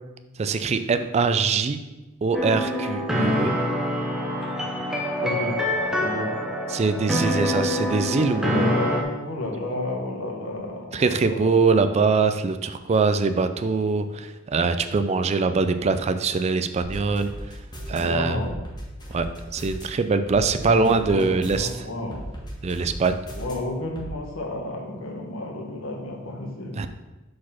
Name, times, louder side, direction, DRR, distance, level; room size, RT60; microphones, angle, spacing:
voice 1, 0.4-1.8 2.2-3.5 6.7-8.8 10.9-17.3 17.9-18.4 19.1-19.3 19.5-21.9 22.6-23.2 26.8-26.9, right 4 dB, 30° right, 10 dB, 0.3 m, -23 dB
sound 1, 2.3-9.0, equal, 5° right, 0.8 m, -25 dB
voice 2, 5.2-5.5 6.0-6.3 8.4-11.5 17.9-18.5 20.6-22.2 23.3-26.9, left 1 dB, 85° left, 1 dB, 1.3 m, -31 dB
sound 2, 16.8-18.0 18.4-19.8 20.3-21.7 22.1-23.5 24.0-24.1, right 1 dB, 20° left, 1.5 m, -37 dB
5.0 x 4.1 x 5.7 m, 1.1 s
head